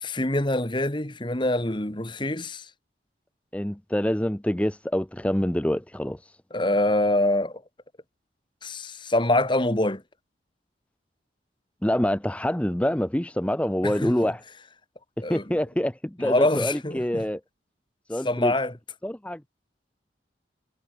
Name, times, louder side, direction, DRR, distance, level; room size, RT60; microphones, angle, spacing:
voice 1, 0.0-2.7 6.5-7.6 8.6-10.0 13.8-14.3 15.2-15.4 16.2-17.2 18.2-18.7, left 1 dB, 25° left, 2.0 m, -25 dB
voice 2, 3.5-6.4 11.8-14.4 15.3-17.4 18.1-18.5 19.0-19.4, equal, 5° left, 0.7 m, -26 dB
head